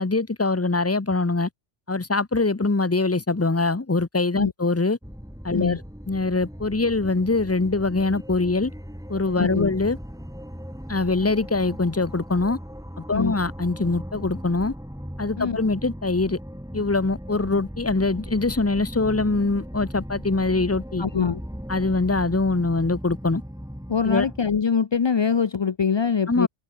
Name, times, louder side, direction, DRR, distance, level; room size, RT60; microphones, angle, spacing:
voice 1, 0.0-1.5 1.9-5.0 5.4-5.8 6.1-8.7 9.1-10.0 10.9-12.6 13.0-14.7 15.2-16.4 16.7-21.1 21.7-23.4 24.0-24.3 26.3-26.5, left 3 dB, 15° left, 0.7 m, -23 dB
sound 1, 5.0-24.4, equal, 5° right, 4.6 m, -38 dB
voice 2, 9.4-9.7 13.1-13.3 15.4-15.6 21.0-21.4 23.9-26.5, left 6 dB, 45° left, 0.3 m, -23 dB
omnidirectional pair, 1.2 m